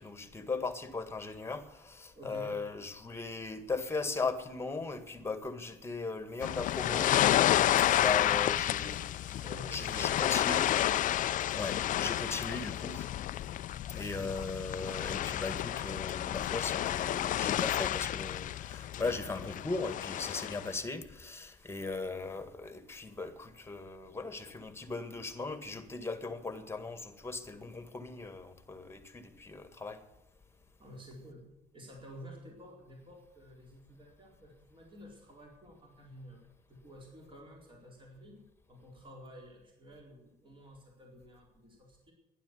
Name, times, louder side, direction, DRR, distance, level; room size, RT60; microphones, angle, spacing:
voice 1, 0.0-7.1 7.8-9.4 9.7-10.6 11.5-13.1 13.9-30.0, left 3 dB, 15° left, 1.8 m, -38 dB
voice 2, 2.1-2.6 9.4-10.5 14.0-14.3 30.8-36.4 36.7-38.4 38.7-42.1, equal, 30° right, 4.4 m, -51 dB
sound 1, 6.4-20.7, left 12 dB, 50° left, 0.4 m, -30 dB
11.5 x 11.0 x 8.3 m
cardioid pair, 110°, 17 cm